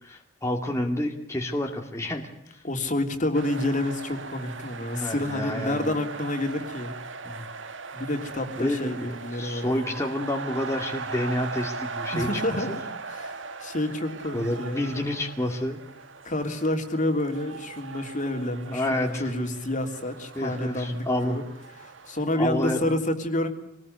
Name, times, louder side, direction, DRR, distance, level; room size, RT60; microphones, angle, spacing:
voice 1, 0.0-2.6 4.9-5.9 7.2-7.5 8.6-12.3 14.3-15.8 18.7-19.2 20.4-21.4 22.4-22.9, left 1 dB, 15° left, 1 dB, 2.4 m, -29 dB
voice 2, 2.6-6.9 7.9-10.0 12.1-12.8 13.1-13.3 13.6-14.9 16.2-21.4 21.8-23.5, left 1 dB, 40° left, 5 dB, 3.3 m, -29 dB
sound 1, 3.3-22.2, right 4 dB, 70° right, 1.7 m, -39 dB
26.5 x 20.0 x 8.1 m, 0.79 s
head